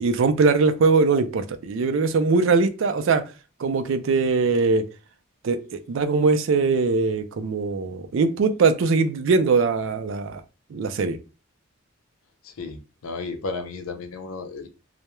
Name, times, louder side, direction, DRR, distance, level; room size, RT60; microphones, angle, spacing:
voice 1, 0.0-3.2 3.6-4.8 5.4-10.4 10.7-11.2, right 4 dB, 65° right, 0.3 m, -21 dB
voice 2, 12.4-14.7, left 4 dB, 85° left, 0.5 m, -33 dB
2.2 x 2.0 x 2.9 m
head